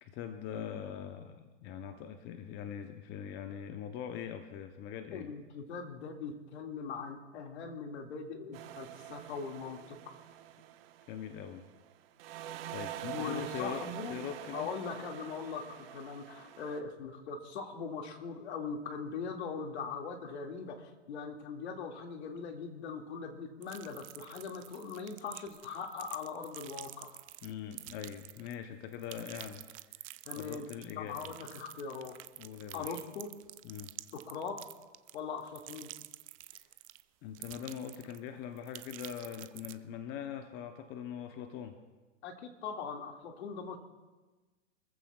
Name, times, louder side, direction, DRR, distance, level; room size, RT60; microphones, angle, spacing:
voice 1, 0.0-5.3 11.1-11.7 12.7-14.7 27.4-29.6 30.0-31.3 32.4-33.0 33.6-33.9 36.5-36.7 37.2-41.8, left 8 dB, 30° left, 7 dB, 0.9 m, -42 dB
voice 2, 5.1-10.1 13.1-14.2 14.5-27.2 30.3-30.6 30.9-32.2 32.7-33.3 34.1-34.6 35.1-35.9 42.2-43.8, left 5 dB, 60° left, 3 dB, 2.3 m, -41 dB
sound 1, 8.5-11.9 12.2-16.8, right 12 dB, 50° right, 1.3 m, -45 dB
sound 2, 23.6-28.6 28.9-37.0 37.3-38.3 38.6-39.7, right 16 dB, 30° right, 0.4 m, -49 dB
25.5 x 14.5 x 2.4 m, 1.3 s
hypercardioid pair, 130°, 37 cm